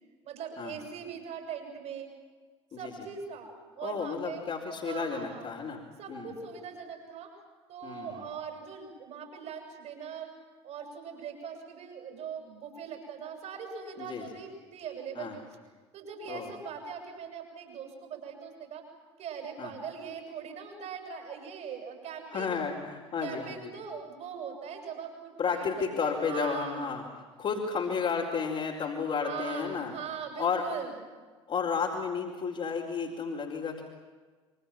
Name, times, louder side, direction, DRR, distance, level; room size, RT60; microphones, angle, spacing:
voice 1, 0.2-2.1 2.8-3.5 3.8-4.4 4.8-5.5 6.0-7.3 7.7-10.3 10.6-15.4 15.9-18.9 19.2-22.6 23.2-27.0 29.1-30.9, right 7 dB, 50° right, 4 dB, 7.2 m, -41 dB
voice 2, 2.7-3.1 3.8-5.8 6.1-6.3 7.8-8.3 14.0-14.3 15.1-15.4 16.3-16.5 19.6-19.7 22.3-23.7 25.4-27.0 27.4-29.9 30.4-30.6 31.5-33.8, left 6 dB, 40° left, -2 dB, 4.6 m, -32 dB
27.5 x 25.0 x 7.5 m, 1.4 s
figure-of-eight pair, 60°, 15 cm